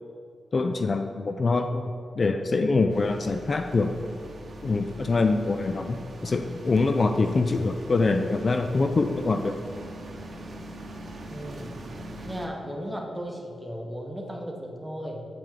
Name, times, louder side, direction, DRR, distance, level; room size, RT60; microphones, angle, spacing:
voice 1, 0.5-3.9 4.6-9.6, left 3 dB, 45° left, 7 dB, 0.3 m, -24 dB
sound 1, 2.9-12.5, right 1 dB, 55° right, 0.8 m, -42 dB
voice 2, 11.3-11.8 12.3-15.3, equal, 10° right, 0 dB, 1.1 m, -36 dB
7.5 x 4.5 x 3.8 m, 2.4 s
cardioid pair, 70°, 0 cm